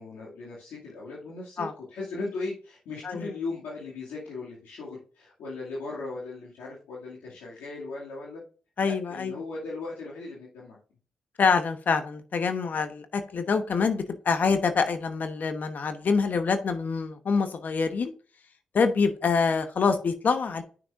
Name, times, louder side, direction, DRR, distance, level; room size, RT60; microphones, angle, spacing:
voice 1, 0.0-8.4 8.8-10.8, left 3 dB, 85° left, -5 dB, 2.3 m, -38 dB
voice 2, 8.8-9.4 11.4-18.1 18.7-20.6, left 5 dB, 60° left, 8 dB, 1.0 m, -25 dB
8.9 x 6.2 x 2.5 m, 0.39 s
supercardioid pair, 50°, 3 cm